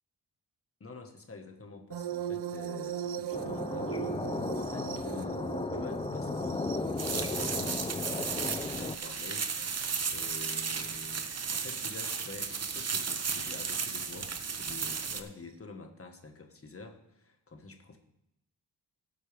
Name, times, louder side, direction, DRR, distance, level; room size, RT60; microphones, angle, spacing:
voice 1, 0.8-18.0, left 3 dB, 35° left, 4 dB, 1.5 m, -47 dB
sound 1, 1.9-10.6 11.9-12.2 13.9-14.0, right 10 dB, 80° right, 0.6 m, -40 dB
sound 2, 3.3-9.0, left 3 dB, 15° left, 0.4 m, -35 dB
sound 3, 7.0-15.2, right 5 dB, 40° right, 0.9 m, -34 dB
17.5 x 8.3 x 3.5 m, 0.81 s
wide cardioid pair, 140°, 40 cm